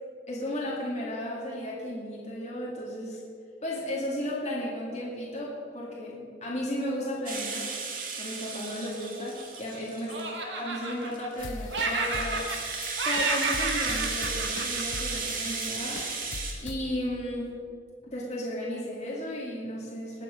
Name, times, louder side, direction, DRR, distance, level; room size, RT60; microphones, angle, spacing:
voice 1, 0.3-3.2 3.6-7.7 8.2-10.1 10.4-12.5 13.0-16.0 16.6-17.5 18.1-20.2, left 1 dB, 35° left, -6 dB, 2.2 m, -34 dB
Rattle (instrument), 7.3-10.3 10.8-16.5, right 4 dB, 45° right, 1.9 m, -35 dB
Laughter, 8.5-9.8 10.1-11.4 11.7-12.7 13.0-15.6, right 4 dB, 65° right, 1.6 m, -31 dB
sound 1, 11.4-16.8, left 3 dB, 80° left, 0.7 m, -40 dB
20.0 x 8.1 x 5.2 m, 2.3 s
head